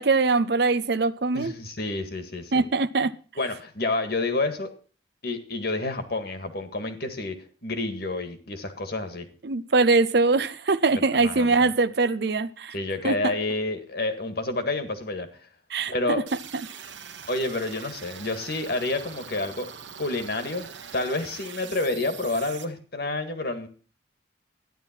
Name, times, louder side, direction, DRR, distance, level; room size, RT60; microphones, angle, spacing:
voice 1, 0.0-1.5 2.5-3.1 9.4-12.7 13.0-13.3 15.7-16.2, right 3 dB, 55° right, 0.6 m, -22 dB
voice 2, 1.3-2.7 3.4-4.7 5.2-7.4 7.6-9.3 11.2-11.7 12.7-15.3 15.9-16.2 17.3-19.7 20.0-20.7 20.9-23.7, left 2 dB, 55° left, 1.8 m, -29 dB
sound 1, 16.3-22.6, right 7 dB, 75° right, 1.1 m, -42 dB
12.5 x 10.5 x 4.5 m
head